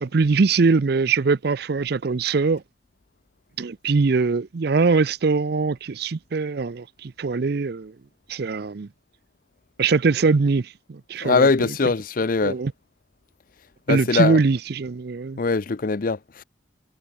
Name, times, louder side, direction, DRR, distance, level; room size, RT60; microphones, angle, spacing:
voice 1, 0.0-2.6 3.6-7.9 8.3-8.9 9.8-11.5 12.4-12.7 13.9-15.4, right 4 dB, 55° right, 0.5 m, -22 dB
voice 2, 11.2-12.6 13.9-14.4 15.4-16.4, left 4 dB, 45° left, 0.5 m, -21 dB
head